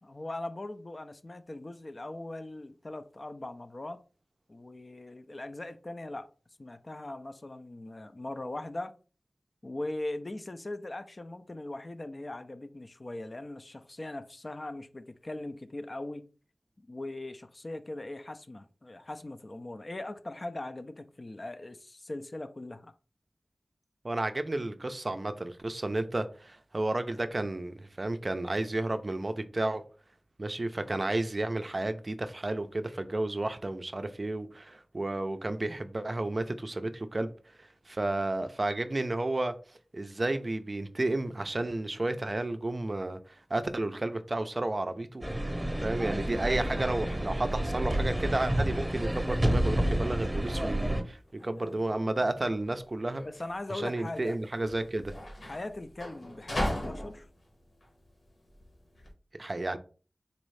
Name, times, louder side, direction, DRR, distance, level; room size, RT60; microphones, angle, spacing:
voice 1, 0.0-4.0 4.5-6.3 6.6-8.9 9.6-16.3 16.9-22.9 53.2-54.4 55.4-57.3, left 2 dB, 45° left, 0.4 m, -40 dB
voice 2, 24.0-29.8 30.4-37.3 37.6-39.5 39.9-45.2 45.8-53.2 53.8-55.2 59.4-59.8, right 2 dB, 45° right, 0.4 m, -32 dB
sound 1, 45.2-51.0, right 1 dB, 15° right, 0.9 m, -29 dB
sound 2, 49.1-59.1, left 1 dB, 75° left, 1.2 m, -40 dB
4.0 x 2.6 x 3.1 m
wide cardioid pair, 65°, 0 cm